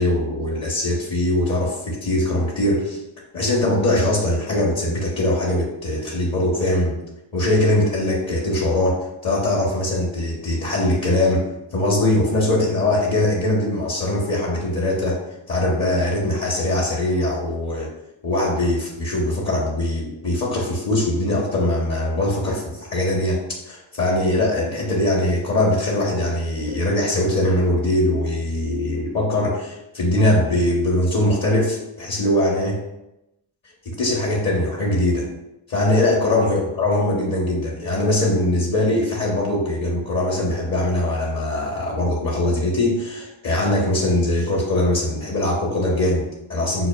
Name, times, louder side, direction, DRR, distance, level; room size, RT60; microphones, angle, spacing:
voice 1, 0.0-3.0 3.3-7.0 7.3-9.0 9.2-11.4 11.7-15.2 15.5-17.9 18.2-23.4 23.7-32.8 33.8-35.3 35.7-46.9, left 1 dB, 45° left, -3 dB, 1.1 m, -21 dB
6.0 x 2.4 x 2.2 m, 0.90 s
supercardioid pair, 70°, 49 cm